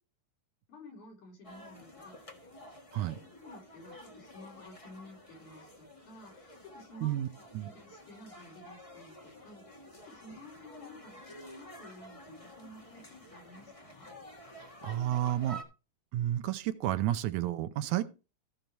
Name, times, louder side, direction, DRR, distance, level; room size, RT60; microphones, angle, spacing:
voice 1, 0.7-2.5 2.9-14.1 18.0-18.1, left 1 dB, 80° left, 5.5 m, -53 dB
sound 1, 1.4-15.6, equal, 25° left, 0.7 m, -51 dB
voice 2, 14.8-15.6 16.1-18.1, right 13 dB, 80° right, 2.1 m, -31 dB
15.0 x 5.5 x 4.5 m
omnidirectional pair, 3.5 m